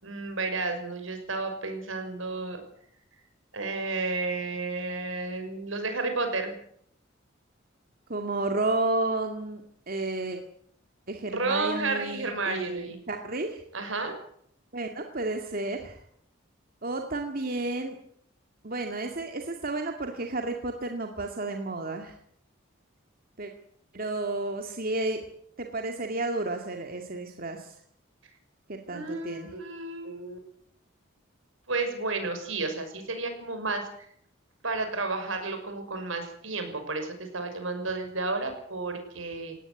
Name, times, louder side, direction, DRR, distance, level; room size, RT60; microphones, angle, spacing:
voice 1, 0.0-2.6 3.5-6.6 11.3-13.0 13.7-14.2 28.9-30.5 31.7-33.9 34.6-39.6, right 3 dB, 75° right, 6 dB, 6.2 m, -32 dB
voice 2, 8.1-10.4 11.1-13.6 14.7-16.0 16.8-18.0 18.6-22.1 23.4-23.5 23.9-25.2 25.6-27.8 28.7-29.5, right 2 dB, 45° right, 4 dB, 2.2 m, -32 dB
19.0 x 18.5 x 9.7 m, 0.67 s
head